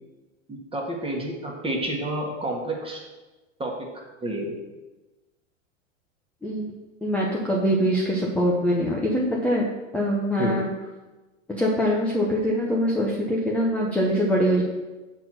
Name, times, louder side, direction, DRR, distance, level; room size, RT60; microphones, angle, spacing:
voice 1, 0.5-3.0 3.6-3.9 4.2-4.6 10.4-10.7, right 1 dB, 15° right, 0 dB, 1.7 m, -29 dB
voice 2, 7.0-9.6 9.9-10.7 11.5-14.6, equal, 5° left, -4 dB, 1.0 m, -23 dB
6.1 x 4.7 x 6.2 m, 1.2 s
hypercardioid pair, 100°, 38 cm